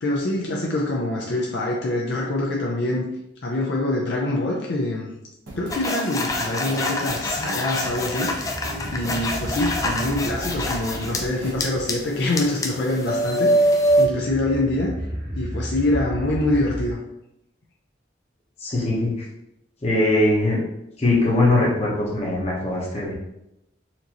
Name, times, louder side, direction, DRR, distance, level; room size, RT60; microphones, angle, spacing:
voice 1, 0.0-3.0 3.4-5.1 5.6-8.5 8.9-13.5 14.0-14.9 15.4-17.0, left 2 dB, 65° left, -2 dB, 0.5 m, -25 dB
sound 1, 5.5-11.5, right 1 dB, 90° right, 1.2 m, -38 dB
sound 2, 5.7-11.2 11.6-14.1, equal, 15° left, 0.3 m, -24 dB
sound 3, 6.8-16.9, equal, 35° right, 0.9 m, -35 dB
voice 2, 18.6-19.1 19.8-20.6 21.0-23.1, left 2 dB, 35° left, -3 dB, 0.9 m, -21 dB
4.3 x 2.6 x 2.9 m, 0.85 s
head